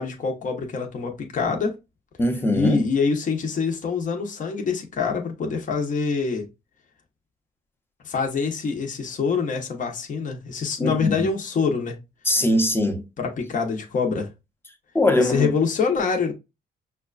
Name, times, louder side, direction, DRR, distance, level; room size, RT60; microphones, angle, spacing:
voice 1, 0.0-1.7 2.5-6.5 8.0-12.0 13.2-14.3 15.2-16.3, left 5 dB, 45° left, 0.9 m, -25 dB
voice 2, 2.2-2.9 10.8-11.3 12.2-13.0 14.9-15.5, left 1 dB, 10° left, 0.8 m, -21 dB
5.7 x 2.3 x 2.4 m
cardioid pair, 90°, 18 cm